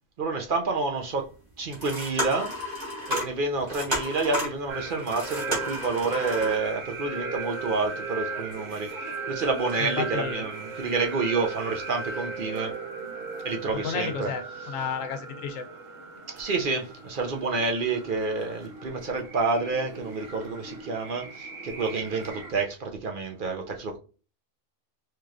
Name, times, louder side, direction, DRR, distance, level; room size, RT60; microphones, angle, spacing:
voice 1, 0.2-1.3 1.6-2.5 3.1-8.9 9.3-12.8 13.4-14.3 16.3-24.0, right 3 dB, 50° right, 0.7 m, -29 dB
sound 1, 1.0-1.1 1.6-6.6, equal, 30° right, 1.8 m, -32 dB
sound 2, 4.7-22.5, right 4 dB, 80° right, 1.3 m, -37 dB
voice 2, 9.8-10.4 13.7-15.7, left 6 dB, 80° left, 1.0 m, -32 dB
4.6 x 3.0 x 2.4 m
omnidirectional pair, 1.3 m